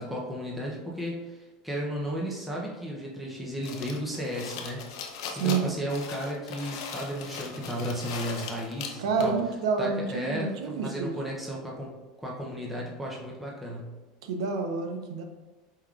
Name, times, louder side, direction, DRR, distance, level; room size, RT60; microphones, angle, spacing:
voice 1, 0.0-4.8 5.4-9.3 9.8-11.9 12.2-13.9, equal, 5° right, -4 dB, 0.6 m, -34 dB
sound 1, 3.6-9.4, left 6 dB, 75° left, 0.6 m, -39 dB
voice 2, 5.3-5.7 9.0-11.1 14.3-15.2, right 5 dB, 85° right, 5 dB, 0.6 m, -28 dB
4.5 x 3.5 x 2.4 m, 1.2 s
supercardioid pair, 145°, 3 cm